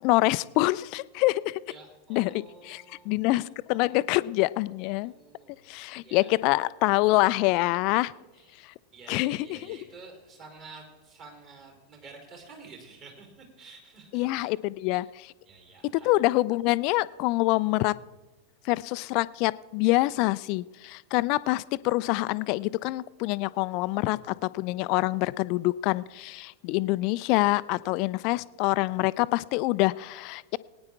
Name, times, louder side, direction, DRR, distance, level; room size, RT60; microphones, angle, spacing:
voice 1, 0.0-1.6 2.1-5.1 5.7-8.1 8.6-8.7 9.1-9.8 14.1-15.1 15.9-17.9 18.6-30.6, left 20 dB, 45° left, 18 dB, 0.4 m, -26 dB
voice 2, 1.7-3.4 3.8-4.0 5.0-5.6 6.0-6.3 8.3-8.6 8.9-14.5 15.5-16.1, right 4 dB, 40° right, 1 dB, 3.8 m, -50 dB
21.5 x 9.6 x 3.6 m, 1.2 s
figure-of-eight pair, 90°, 0 cm